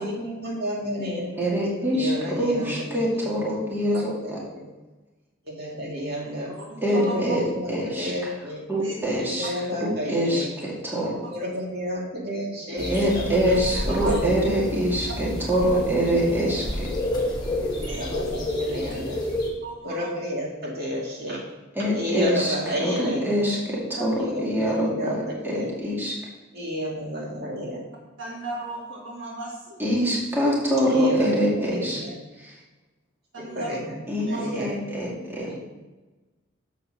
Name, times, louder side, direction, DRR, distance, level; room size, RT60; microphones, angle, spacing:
voice 1, 0.0-1.5 1.9-2.8 3.1-3.3 4.2-4.7 5.5-6.5 7.0-8.6 9.2-10.5 11.3-13.6 13.8-14.3 15.6-15.7 16.3-16.6 17.9-19.2 19.8-21.4 21.9-23.5 24.2-25.7 26.5-27.8 30.9-31.3 31.6-32.2 33.4-34.7 35.5-35.6, equal, 50° right, -3 dB, 2.7 m, -31 dB
voice 2, 1.3-4.4 6.8-8.3 8.7-11.2 12.9-16.9 21.7-26.2 29.8-32.0 32.3-32.6 34.1-35.5, equal, 10° right, -5 dB, 2.2 m, -25 dB
voice 3, 6.5-7.2 8.8-8.9 11.2-11.3 13.5-14.2 17.8-18.0 19.6-20.1 24.0-24.1 28.2-29.8 30.8-31.0 33.3-33.8 34.3-34.5, right 2 dB, 70° right, -2 dB, 1.7 m, -35 dB
sound 1, 12.8-19.5, left 1 dB, 20° left, 1.9 m, -30 dB
7.2 x 5.6 x 6.4 m, 1.2 s
head